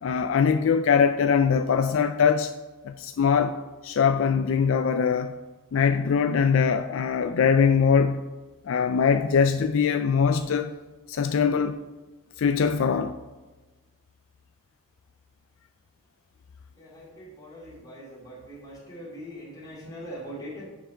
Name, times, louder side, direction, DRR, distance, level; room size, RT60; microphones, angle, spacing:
voice 1, 0.0-2.5 2.8-3.6 3.8-5.4 5.7-8.3 8.7-10.7 11.1-11.8 12.4-13.1, left 6 dB, 60° left, 0.3 m, -22 dB
voice 2, 16.8-20.7, equal, 15° left, 2.6 m, -41 dB
7.1 x 5.8 x 5.0 m
head